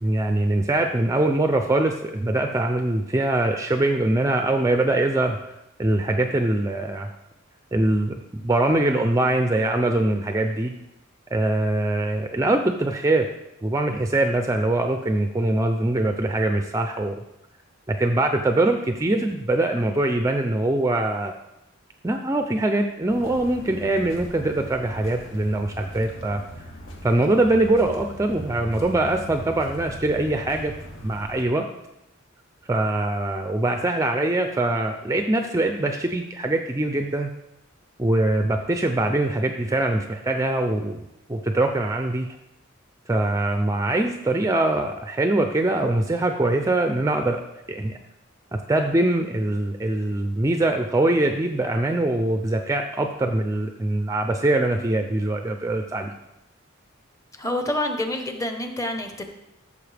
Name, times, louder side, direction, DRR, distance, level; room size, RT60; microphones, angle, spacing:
voice 1, 0.0-5.4 5.8-7.1 7.7-10.7 11.3-13.3 13.6-17.2 17.9-21.3 22.0-26.4 27.0-30.7 31.0-31.6 32.7-37.3 38.0-41.0 41.3-42.3 43.1-47.4 47.7-48.0 48.7-56.1, right 2 dB, 15° right, 5 dB, 0.4 m, -23 dB
sound 1, 23.1-31.4, equal, 80° left, 1.8 m, -40 dB
voice 2, 57.3-59.2, left 1 dB, 15° left, 5 dB, 0.9 m, -27 dB
13.5 x 6.9 x 3.4 m, 0.89 s
head